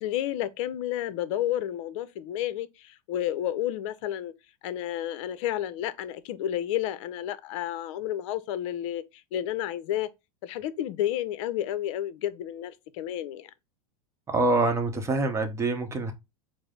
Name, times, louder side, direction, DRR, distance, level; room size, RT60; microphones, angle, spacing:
voice 1, 0.0-4.3 4.6-9.0 9.3-10.1 10.4-13.5, left 12 dB, 60° left, 0.6 m, -31 dB
voice 2, 14.3-16.1, right 2 dB, 15° right, 0.8 m, -25 dB
4.7 x 2.0 x 3.7 m
hypercardioid pair, 115°, 18 cm